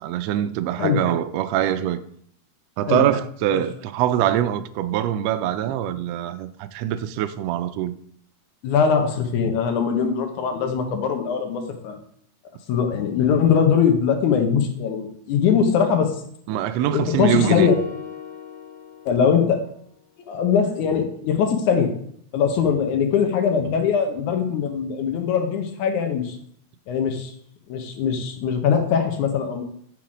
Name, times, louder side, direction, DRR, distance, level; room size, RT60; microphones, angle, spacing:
voice 1, 0.0-2.0 2.8-7.9 16.5-17.7, right 11 dB, 85° right, 1.5 m, -23 dB
voice 2, 8.6-12.0 12.7-16.1 16.8-17.8 19.1-19.6 20.3-21.9 22.3-26.4 26.9-27.3 27.7-29.6, left 7 dB, 90° left, 2.5 m, -21 dB
sound 1, 17.4-19.7, left 8 dB, 60° left, 2.6 m, -36 dB
6.0 x 5.7 x 4.9 m
omnidirectional pair, 3.4 m